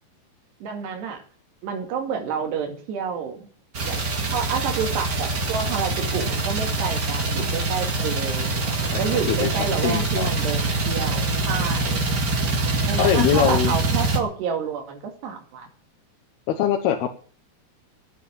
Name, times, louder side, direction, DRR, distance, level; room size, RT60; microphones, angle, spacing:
voice 1, 0.6-1.2 1.6-3.5 3.8-4.0 4.3-12.0 12.8-15.7, right 6 dB, 85° right, 3 dB, 4.5 m, -29 dB
sound 1, 3.7-14.2, right 3 dB, 35° right, 2.0 m, -24 dB
voice 2, 8.7-9.5 9.8-10.3 13.0-13.7 16.5-17.1, left 10 dB, 75° left, 4 dB, 3.1 m, -23 dB
17.0 x 8.8 x 7.3 m, 0.43 s
omnidirectional pair, 4.7 m